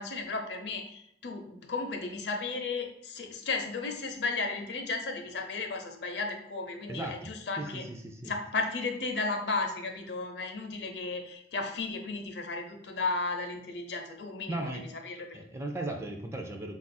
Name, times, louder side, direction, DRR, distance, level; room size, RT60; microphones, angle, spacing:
voice 1, 0.0-7.8 8.2-15.4, left 3 dB, 70° left, 4 dB, 0.6 m, -34 dB
voice 2, 6.9-7.3 7.6-8.3 14.5-14.8 15.3-16.8, right 1 dB, 15° right, 3 dB, 0.4 m, -37 dB
3.9 x 2.4 x 4.1 m, 0.73 s
head